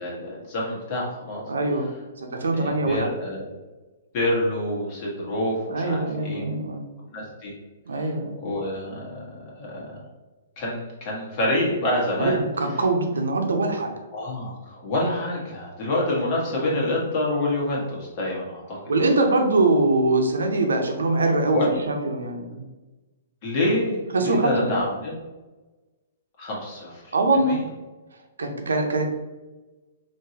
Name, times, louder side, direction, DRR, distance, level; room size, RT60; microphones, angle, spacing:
voice 1, 0.0-1.4 2.5-3.4 4.1-6.5 7.1-7.5 8.4-10.0 10.6-12.4 14.1-18.8 21.5-21.8 23.4-25.2 26.4-27.1 27.4-27.6, left 1 dB, 45° left, -4 dB, 1.4 m, -27 dB
voice 2, 1.5-1.9 2.2-3.1 5.7-6.9 7.9-8.4 12.2-14.0 18.9-22.7 24.1-24.6 27.1-27.6 28.4-29.1, right 2 dB, 85° right, 3 dB, 0.6 m, -23 dB
3.7 x 2.7 x 2.8 m, 1.2 s
hypercardioid pair, 135°, 0 cm